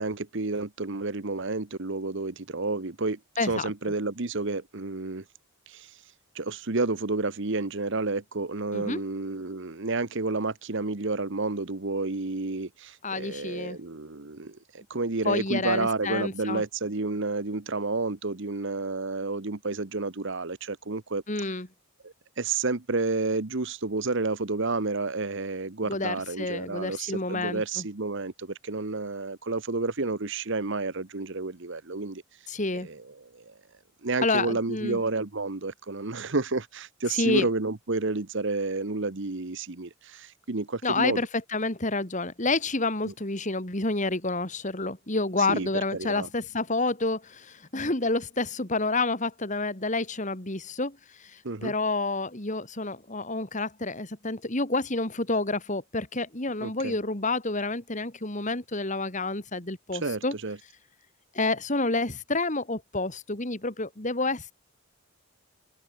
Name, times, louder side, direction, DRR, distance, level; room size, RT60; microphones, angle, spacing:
voice 1, 0.0-5.2 5.7-5.9 6.3-21.2 22.0-32.2 32.7-33.5 34.0-41.2 43.0-43.1 45.5-46.3 51.4-51.7 56.6-56.9 59.9-60.6, right 3 dB, 55° right, 1.1 m, -30 dB
voice 2, 3.4-3.7 8.7-9.0 13.0-13.8 15.2-16.6 21.3-21.7 25.9-27.8 32.5-32.9 34.2-35.0 37.1-37.5 40.8-60.3 61.3-64.5, left 3 dB, 35° left, 2.4 m, -29 dB
open air
head